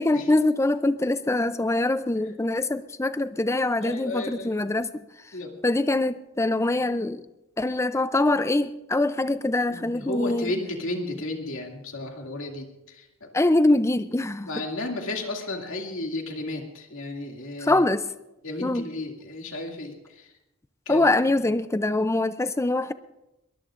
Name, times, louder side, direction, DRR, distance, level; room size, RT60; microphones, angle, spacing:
voice 1, 0.0-5.0 5.6-7.2 7.6-10.5 13.3-14.5 17.6-18.1 18.6-18.8 20.9-22.9, left 2 dB, 15° left, 0.5 m, -23 dB
voice 2, 3.8-4.5 5.3-5.5 9.7-13.3 14.5-17.8 18.4-20.3 20.9-21.1, left 2 dB, 70° left, 2.4 m, -33 dB
22.5 x 19.5 x 2.5 m
head